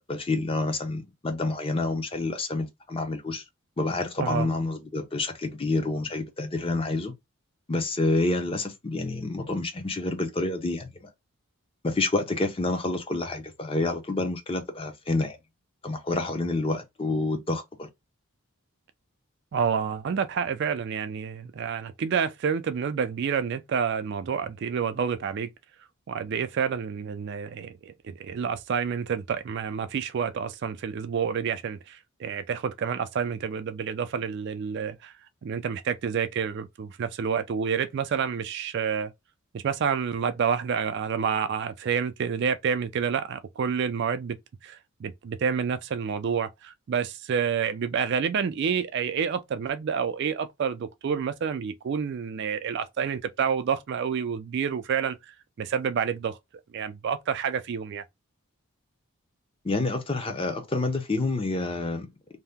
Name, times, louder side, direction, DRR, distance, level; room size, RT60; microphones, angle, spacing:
voice 1, 0.1-3.4 3.8-7.1 7.7-11.1 11.8-15.4 15.8-17.9 59.6-62.1, left 2 dB, 25° left, 0.6 m, -28 dB
voice 2, 19.5-25.5 26.1-35.1 35.4-39.1 39.5-44.4 44.6-56.4 56.7-58.0, right 7 dB, 50° right, 0.3 m, -29 dB
2.7 x 2.1 x 3.4 m
head